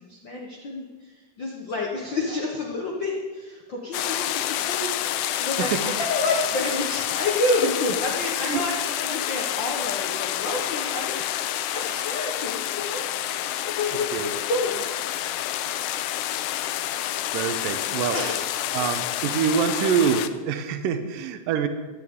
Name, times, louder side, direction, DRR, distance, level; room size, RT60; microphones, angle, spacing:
voice 1, 0.0-13.1 13.6-14.8 18.1-18.4, left 2 dB, 60° left, -1 dB, 1.2 m, -29 dB
sound 1, 3.9-20.3, left 12 dB, 80° left, 1.9 m, -28 dB
voice 2, 17.3-18.2 18.7-21.7, right 7 dB, 85° right, 9 dB, 2.5 m, -25 dB
16.0 x 11.5 x 3.7 m, 1.4 s
omnidirectional pair, 3.8 m